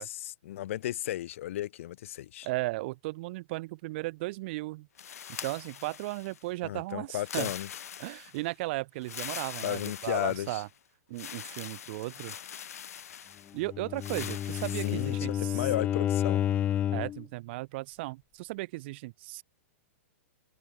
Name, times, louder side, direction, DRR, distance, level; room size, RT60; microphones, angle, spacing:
voice 1, 0.0-2.5 6.6-7.7 9.6-10.6 14.7-16.4, left 13 dB, 60° left, 3.3 m, -34 dB
voice 2, 2.4-4.9 5.4-7.5 8.0-10.7 11.1-12.4 13.5-15.7 16.9-19.4, right 21 dB, 45° right, 2.7 m, -36 dB
sound 1, 5.0-6.5 7.1-8.5 9.0-10.7 11.2-13.5 14.0-15.2, left 9 dB, 90° left, 1.4 m, -43 dB
Bowed string instrument, 13.6-17.2, left 11 dB, 15° left, 0.3 m, -30 dB
hypercardioid pair, 150°, 8 cm